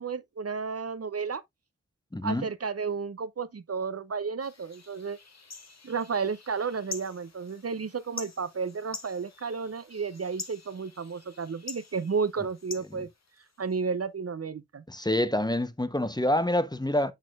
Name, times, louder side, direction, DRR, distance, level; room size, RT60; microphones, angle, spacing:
voice 1, 0.0-1.4 2.2-5.2 5.8-13.1 13.6-14.8, right 5 dB, 55° right, 0.6 m, -32 dB
voice 2, 2.1-2.4 14.9-17.1, left 1 dB, 15° left, 0.7 m, -26 dB
sound 1, 4.4-13.8, left 4 dB, 65° left, 1.2 m, -46 dB
6.5 x 6.2 x 2.3 m
wide cardioid pair, 55°, 29 cm